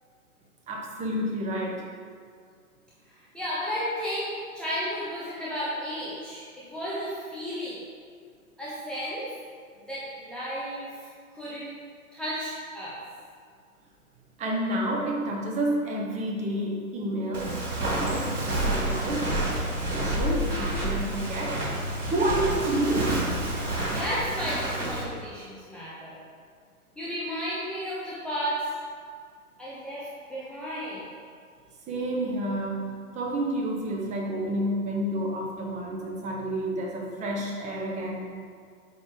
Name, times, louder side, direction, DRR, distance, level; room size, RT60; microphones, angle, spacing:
voice 1, 0.7-1.8 14.4-18.3 18.7-21.6 22.1-23.2 31.9-32.9 33.1-38.3, right 1 dB, 15° right, -1 dB, 1.2 m, -29 dB
voice 2, 3.3-6.4 6.7-7.8 8.6-9.3 9.9-11.1 11.3-11.8 12.1-13.0 23.9-26.2 27.0-28.6 29.6-31.1, equal, ahead, -10 dB, 0.7 m, -33 dB
Walk footsteps, 17.3-25.0, right 1 dB, 75° right, 2.3 m, -29 dB
8.2 x 5.2 x 5.3 m, 2.1 s
figure-of-eight pair, 110°, 44 cm